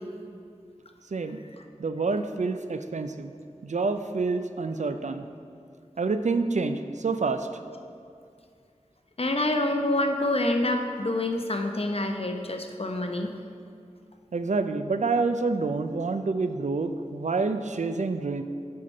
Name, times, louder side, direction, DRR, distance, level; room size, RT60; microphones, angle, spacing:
voice 1, 1.8-3.3 3.6-5.3 6.0-7.5 14.3-18.4, right 3 dB, 75° right, 9 dB, 0.4 m, -27 dB
voice 2, 9.2-13.3, left 1 dB, 50° left, 4 dB, 0.8 m, -27 dB
7.6 x 5.7 x 5.4 m, 2.4 s
wide cardioid pair, 40°, 13 cm